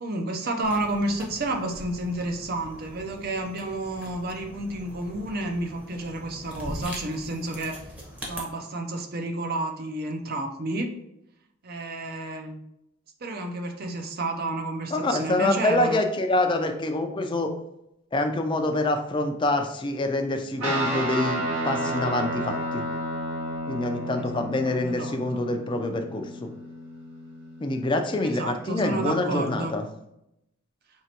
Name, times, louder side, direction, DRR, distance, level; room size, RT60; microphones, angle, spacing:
voice 1, 0.0-7.8 8.2-10.9 11.6-12.6 13.2-16.0 24.3-25.4 28.2-29.8, right 2 dB, 45° right, 4 dB, 0.6 m, -31 dB
sound 1, 0.6-8.4, equal, 5° right, 0.8 m, -41 dB
voice 2, 14.9-17.5 18.1-22.8 23.7-26.5 27.6-29.8, left 2 dB, 25° left, 5 dB, 0.4 m, -26 dB
Guitar, 20.6-28.2, equal, 85° right, 1.5 m, -31 dB
4.6 x 2.9 x 2.9 m, 0.81 s
head